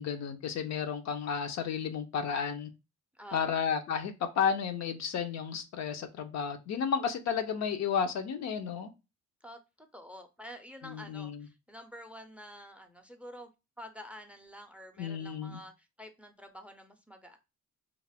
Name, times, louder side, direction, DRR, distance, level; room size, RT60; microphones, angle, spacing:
voice 1, 0.0-2.7 3.3-8.9 10.8-11.5 15.0-15.6, left 7 dB, 60° left, 0.5 m, -32 dB
voice 2, 3.1-3.7 9.4-13.5 13.8-17.4, equal, 5° right, 0.4 m, -49 dB
2.4 x 2.0 x 3.2 m
cardioid pair, 90°, 30 cm